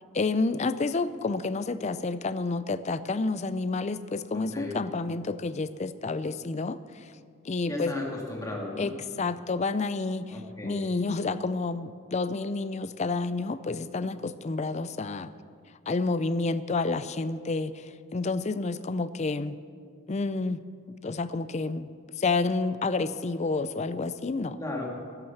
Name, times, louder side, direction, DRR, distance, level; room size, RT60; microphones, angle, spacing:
voice 1, 0.1-7.1 7.4-7.9 8.8-15.3 15.9-19.6 20.1-20.6 21.0-21.9 22.2-24.6, left 3 dB, 30° left, 14 dB, 0.4 m, -29 dB
voice 2, 4.3-4.8 7.7-8.9 10.3-10.8 24.6-24.9, left 2 dB, 15° left, -2 dB, 2.2 m, -35 dB
12.0 x 11.0 x 7.0 m, 2.1 s
head